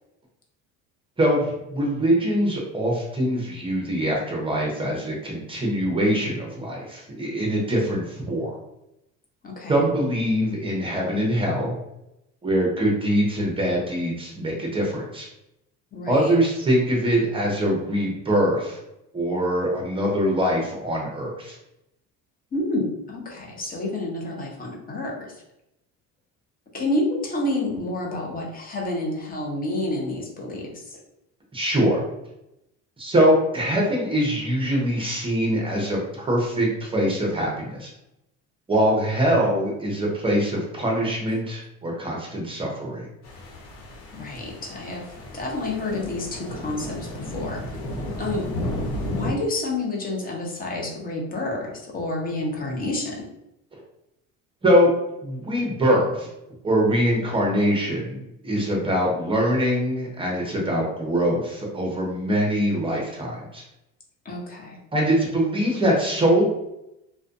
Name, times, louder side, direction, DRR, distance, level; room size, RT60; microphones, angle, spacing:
voice 1, 1.2-8.6 9.7-11.8 12.4-15.3 16.1-18.8 19.1-21.6 31.5-32.0 33.0-37.9 38.7-43.1 54.6-54.9 55.2-56.3 56.6-63.6 64.9-66.4, equal, 15° right, -2 dB, 0.7 m, -23 dB
voice 2, 9.4-9.9 15.9-16.3 22.5-25.4 26.7-31.0 44.1-45.0 45.3-47.6 48.2-48.5 49.1-53.3 64.2-64.8, left 2 dB, 25° left, -1 dB, 0.7 m, -29 dB
sound 1, 43.2-49.3, left 1 dB, 75° left, 1.1 m, -33 dB
2.4 x 2.2 x 2.5 m, 0.86 s
cardioid pair, 125°, 34 cm